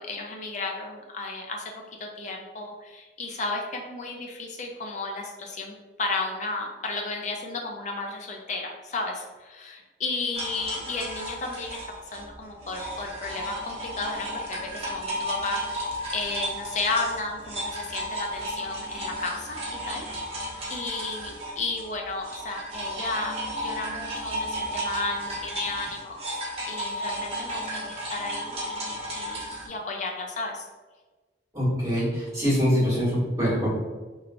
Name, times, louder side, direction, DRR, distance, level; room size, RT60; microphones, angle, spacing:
voice 1, 0.0-1.7 2.0-11.8 12.1-20.4 20.7-23.4 23.6-30.7, left 3 dB, 40° left, 1 dB, 0.4 m, -33 dB
sound 1, 10.3-21.9 22.2-29.7, equal, 35° right, 0.7 m, -34 dB
voice 2, 31.5-33.7, equal, 20° right, -9 dB, 1.3 m, -24 dB
3.1 x 2.7 x 2.5 m, 1.3 s
head